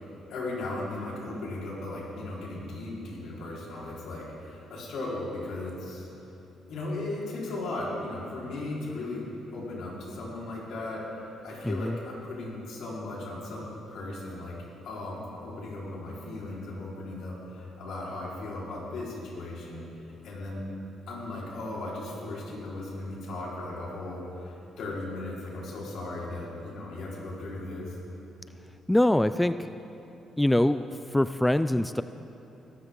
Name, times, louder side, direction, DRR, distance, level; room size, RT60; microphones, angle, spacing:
voice 1, 0.3-6.1 6.7-14.6 14.8-19.8 20.2-20.7 21.1-28.0, left 2 dB, 75° left, -5 dB, 4.2 m, -37 dB
voice 2, 11.6-12.0 28.9-29.7 30.4-32.0, left 1 dB, 5° left, 12 dB, 0.3 m, -24 dB
21.5 x 12.5 x 3.8 m, 2.9 s
cardioid pair, 90°, 0 cm